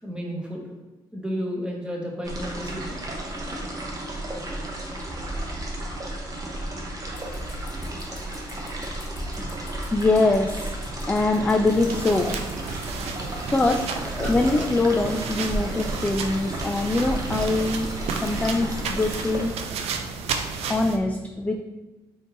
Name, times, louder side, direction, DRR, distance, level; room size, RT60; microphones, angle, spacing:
voice 1, 0.0-0.7 1.1-3.0 3.4-3.5, equal, 10° right, -1 dB, 1.1 m, -32 dB
sound 1, 2.2-19.4, right 1 dB, 35° right, 1.0 m, -33 dB
sound 2, 7.1-13.2, left 2 dB, 80° left, 1.0 m, -45 dB
voice 2, 9.9-10.7 11.0-12.4 13.5-19.8 20.7-21.6, left 2 dB, 15° left, 4 dB, 0.3 m, -23 dB
sound 3, 11.7-21.0, right 5 dB, 70° right, 0.4 m, -33 dB
3.5 x 2.7 x 4.0 m, 1.1 s
supercardioid pair, 60°, 11 cm